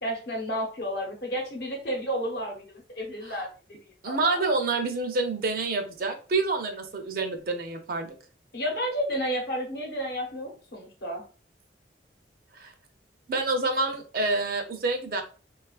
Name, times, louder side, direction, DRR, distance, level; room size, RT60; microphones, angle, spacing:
voice 1, 0.0-3.8 4.0-4.4 8.5-11.2, equal, 60° left, 1 dB, 0.9 m, -31 dB
voice 2, 4.0-8.1 12.5-12.7 13.3-15.2, right 3 dB, 50° right, 5 dB, 0.5 m, -28 dB
3.2 x 2.3 x 2.3 m, 0.38 s
head